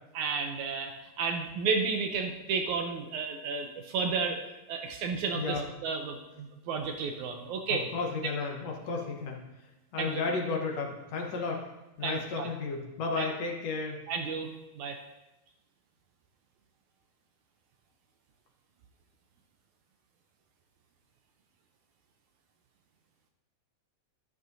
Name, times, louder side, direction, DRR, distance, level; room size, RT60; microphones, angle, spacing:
voice 1, 0.1-4.4 4.7-7.8 10.0-10.2 12.0-12.5 13.2-13.3 14.1-14.5 14.8-15.0, right 5 dB, 75° right, 4 dB, 1.9 m, -32 dB
voice 2, 7.7-9.4 9.9-11.6 12.0-14.0, left 4 dB, 60° left, 0 dB, 1.9 m, -33 dB
12.0 x 11.5 x 2.7 m, 0.99 s
omnidirectional pair, 3.9 m